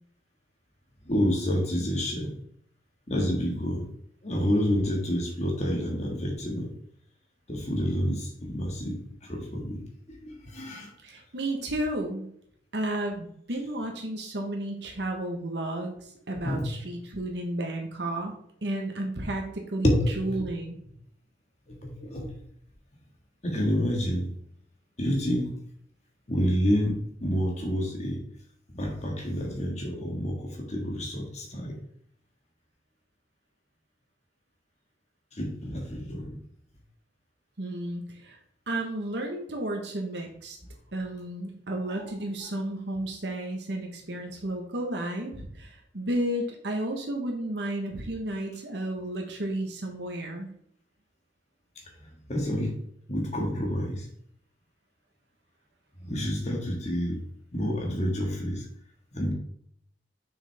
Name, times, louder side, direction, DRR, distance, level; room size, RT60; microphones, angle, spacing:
voice 1, 1.0-2.3 3.1-3.9 4.2-6.7 7.5-9.8 10.1-10.9 16.4-16.7 19.8-20.3 21.7-22.3 23.4-24.4 25.0-25.5 26.3-28.2 28.7-31.7 35.3-36.3 41.9-42.1 52.0-52.7 53.1-54.1 56.0-57.2 57.5-58.7 59.1-59.3, equal, 40° left, 0 dB, 1.8 m, -28 dB
voice 2, 11.0-12.3 12.7-19.9 20.2-20.8 37.6-38.4 38.7-40.6 40.9-50.5, right 1 dB, 65° right, 2 dB, 1.2 m, -32 dB
6.5 x 6.3 x 3.5 m, 0.68 s
head